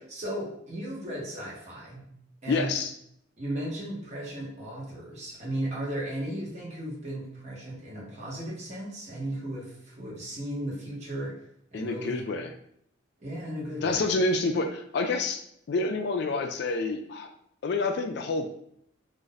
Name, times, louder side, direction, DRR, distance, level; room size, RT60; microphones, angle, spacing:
voice 1, 0.1-2.1 2.4-2.7 3.4-11.3 11.7-12.3 13.2-14.1, right 1 dB, 35° right, -5 dB, 1.1 m, -35 dB
voice 2, 2.5-2.9 11.7-12.5 13.8-15.4 15.7-17.3 17.6-18.5, left 3 dB, 55° left, 6 dB, 0.3 m, -28 dB
2.5 x 2.5 x 3.9 m, 0.71 s
head